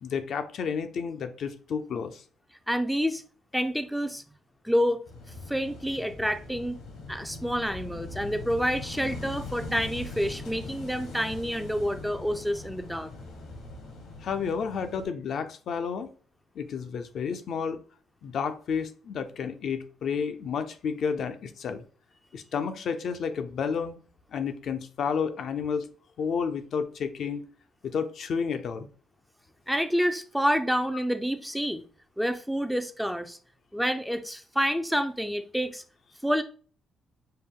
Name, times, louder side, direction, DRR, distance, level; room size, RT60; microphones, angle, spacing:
voice 1, 0.0-2.2 14.2-16.1 16.6-17.8 18.2-21.8 22.3-24.0 24.3-25.9 26.2-27.4 27.8-28.9, left 6 dB, 65° left, 0.5 m, -31 dB
voice 2, 2.7-3.2 3.5-4.2 4.6-5.0 5.5-6.8 7.1-13.1 29.7-31.8 32.2-33.4 33.7-35.8 36.2-36.4, equal, ahead, 0.4 m, -28 dB
Wind / Waves surf, 5.1-15.1, left 2 dB, 85° left, 1.3 m, -41 dB
5.4 x 2.1 x 3.6 m
cardioid pair, 90°, 0 cm